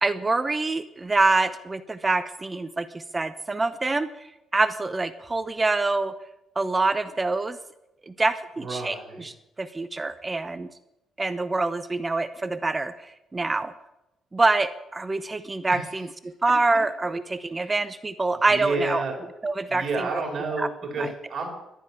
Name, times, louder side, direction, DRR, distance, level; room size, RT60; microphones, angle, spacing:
voice 1, 0.0-4.3 4.5-6.1 6.6-7.6 8.1-8.9 9.6-10.7 11.2-13.7 14.3-19.0 19.4-19.8 20.6-20.7, right 3 dB, 20° right, 12 dB, 0.7 m, -25 dB
voice 2, 8.6-9.3 15.7-15.9 17.4-17.8 18.3-19.2 19.7-21.5, right 3 dB, 40° right, 1 dB, 4.8 m, -31 dB
12.0 x 10.0 x 9.6 m, 0.89 s
cardioid pair, 130°, 0 cm